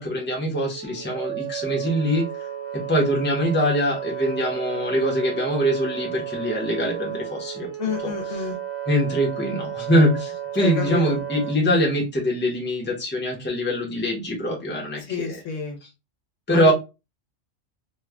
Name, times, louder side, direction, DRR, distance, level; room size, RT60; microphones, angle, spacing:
voice 1, 0.0-2.5 2.7-7.7 8.0-8.1 8.9-15.4 16.5-16.7, equal, 10° left, 0.8 m, -23 dB
Wind instrument woodwind instrument, 0.7-11.6, right 10 dB, 85° right, 1.0 m, -33 dB
voice 2, 7.8-8.6 10.5-11.2 15.0-15.8 16.5-16.7, left 6 dB, 80° left, 1.2 m, -29 dB
3.0 x 2.2 x 3.5 m
omnidirectional pair, 1.3 m